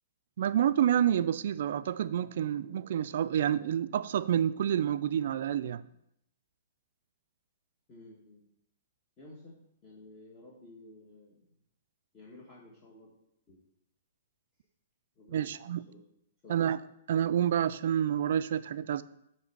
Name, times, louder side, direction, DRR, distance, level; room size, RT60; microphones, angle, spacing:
voice 1, 0.4-5.8 15.3-15.8 16.5-16.8 17.1-19.0, right 10 dB, 60° right, 0.3 m, -28 dB
voice 2, 7.9-8.5 9.2-11.6 12.1-13.1 13.5-13.6 15.1-16.0 16.4-16.7, left 2 dB, 25° left, 1.3 m, -53 dB
7.4 x 3.2 x 5.4 m
hypercardioid pair, 150°, 0 cm